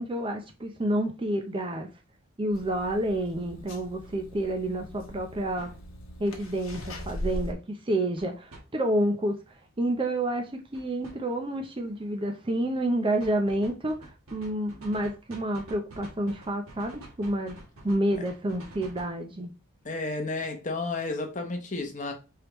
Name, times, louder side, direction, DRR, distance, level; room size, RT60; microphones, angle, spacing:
voice 1, 0.0-1.9 2.4-5.7 6.2-9.4 9.8-17.6 17.8-19.5, right 1 dB, 25° right, 0.5 m, -29 dB
sound 1, 2.5-7.5, equal, 70° left, 1.0 m, -40 dB
sound 2, 4.0-4.1 5.6-5.8 8.2-8.6 10.7-11.2 13.2-19.2, right 1 dB, 80° right, 1.3 m, -47 dB
voice 2, 19.8-22.1, left 3 dB, 35° left, 0.9 m, -32 dB
4.6 x 3.4 x 3.0 m
head